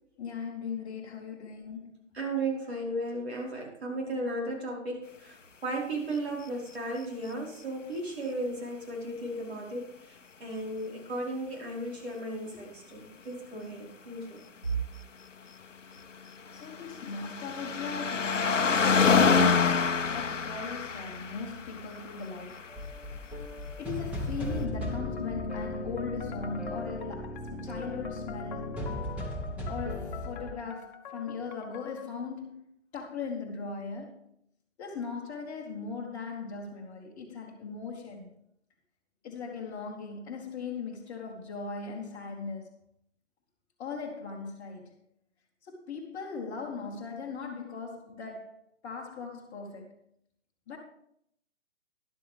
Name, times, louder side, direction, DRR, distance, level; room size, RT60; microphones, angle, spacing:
voice 1, 0.2-1.9 12.5-12.6 16.5-22.7 23.8-28.8 29.7-32.6 32.9-34.2 34.8-38.3 39.2-42.7 43.8-44.9 45.6-48.5 48.8-49.9 50.7-50.8, left 4 dB, 20° left, 1.5 m, -39 dB
voice 2, 2.1-14.4, right 1 dB, 60° right, 4.8 m, -35 dB
sound 1, 16.2-22.9 23.8-23.9, left 5 dB, 85° left, 0.7 m, -27 dB
sound 2, 22.7-30.5, left 1 dB, 5° right, 1.5 m, -36 dB
sound 3, 24.8-32.2, left 8 dB, 40° left, 1.4 m, -45 dB
13.0 x 11.5 x 3.5 m
figure-of-eight pair, 135°, 37 cm